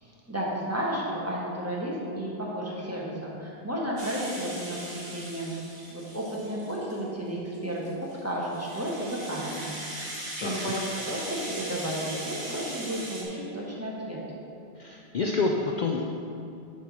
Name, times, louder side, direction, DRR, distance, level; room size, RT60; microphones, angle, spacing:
voice 1, 0.0-5.5 5.9-9.7 10.0-10.1 10.4-14.2, right 1 dB, 15° right, -5 dB, 1.2 m, -33 dB
Rattle (instrument), 4.0-7.0 7.5-13.2, right 1 dB, 40° right, 1.5 m, -39 dB
voice 2, 10.4-10.7 14.8-16.0, left 3 dB, 55° left, 1 dB, 0.5 m, -28 dB
6.9 x 4.5 x 6.2 m, 2.6 s
omnidirectional pair, 1.0 m